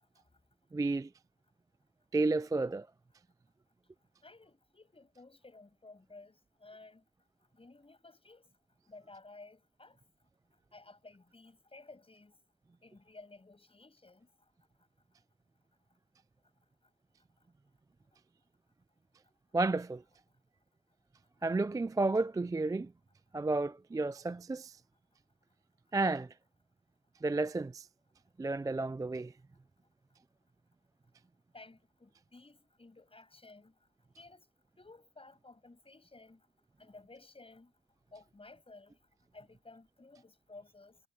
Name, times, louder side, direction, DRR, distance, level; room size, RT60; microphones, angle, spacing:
voice 1, 0.7-1.1 2.1-2.9 19.5-20.0 21.4-22.9 23.3-24.8 25.9-26.3 27.2-27.9 28.4-29.3, right 3 dB, 10° right, 0.4 m, -31 dB
voice 2, 4.2-7.0 7.5-8.5 8.9-10.0 10.7-12.4 12.8-14.3 31.5-33.7 34.2-34.5 34.8-36.4 36.8-37.7 38.1-39.0 39.3-41.0, left 3 dB, 20° left, 7.3 m, -55 dB
cardioid pair, 90°, 30 cm